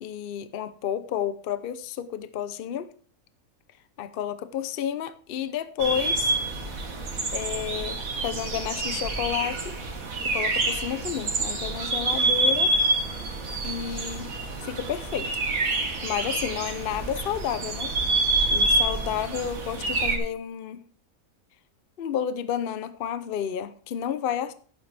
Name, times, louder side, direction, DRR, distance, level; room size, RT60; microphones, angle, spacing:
voice 1, 0.0-2.9 4.0-6.4 7.3-9.8 10.2-12.7 13.6-14.3 14.6-15.3 16.0-17.9 18.5-20.8 22.0-24.5, left 9 dB, 55° left, 0.7 m, -31 dB
sound 1, 5.8-20.2, right 2 dB, 65° right, 2.0 m, -27 dB
12.0 x 8.7 x 3.3 m
omnidirectional pair, 1.6 m